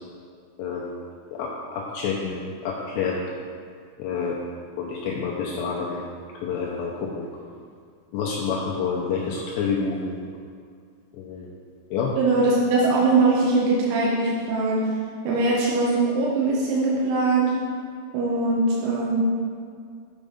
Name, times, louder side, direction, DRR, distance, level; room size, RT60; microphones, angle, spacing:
voice 1, 0.6-0.9 1.3-3.2 4.0-4.4 4.8-6.0 6.3-7.3 8.1-10.2 11.1-11.5 11.9-12.1, left 5 dB, 90° left, -3 dB, 2.5 m, -28 dB
voice 2, 12.2-14.9 15.3-17.5 18.1-19.2, right 3 dB, 90° right, -5 dB, 3.7 m, -21 dB
8.1 x 6.3 x 5.2 m, 2.2 s
omnidirectional pair, 5.8 m